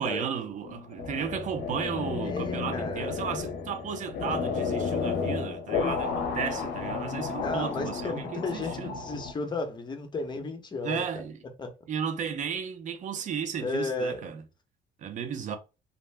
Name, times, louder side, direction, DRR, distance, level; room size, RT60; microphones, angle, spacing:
voice 1, 0.0-9.0 10.8-11.4 11.9-14.4 15.0-15.6, right 7 dB, 50° right, 0.6 m, -34 dB
sound 1, 0.6-9.3, left 5 dB, 70° left, 0.6 m, -32 dB
voice 2, 2.2-3.1 7.4-11.0 11.6-11.7 13.6-14.2, left 3 dB, 25° left, 0.8 m, -33 dB
2.7 x 2.1 x 3.3 m
cardioid pair, 110°, 17 cm